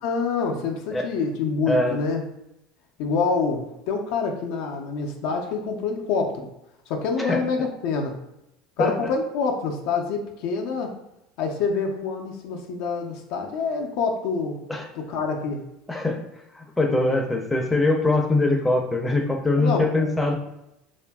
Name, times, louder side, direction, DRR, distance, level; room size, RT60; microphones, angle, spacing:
voice 1, 0.0-2.2 3.0-6.5 6.9-8.2 8.8-10.9 11.4-14.6 14.9-15.6 19.6-20.1, left 4 dB, 70° left, 2 dB, 0.4 m, -26 dB
voice 2, 1.7-2.0 7.2-7.4 8.8-9.1 14.7-14.9 15.9-16.2 16.5-20.3, left 2 dB, 10° left, 2 dB, 0.4 m, -22 dB
2.7 x 2.4 x 2.2 m, 0.85 s
supercardioid pair, 100°, 0 cm